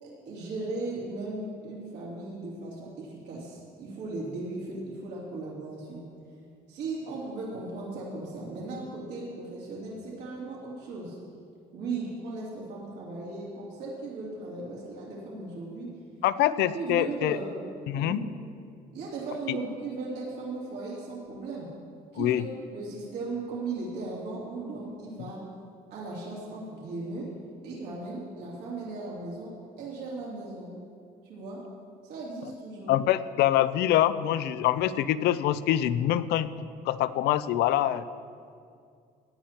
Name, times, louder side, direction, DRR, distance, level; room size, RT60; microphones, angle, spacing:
voice 1, 0.0-6.0 6.7-11.2 11.7-15.9 16.5-17.5 18.0-18.3 18.9-21.7 22.1-25.4 25.9-27.3 27.6-30.7 31.2-31.6 32.0-33.0, right 3 dB, 85° right, -6 dB, 2.8 m, -37 dB
voice 2, 16.2-17.4 17.9-18.2 19.5-19.6 22.2-22.4 32.9-38.0, left 12 dB, 80° left, 15 dB, 0.4 m, -25 dB
16.5 x 10.0 x 2.9 m, 2.3 s
cardioid pair, 110°, 17 cm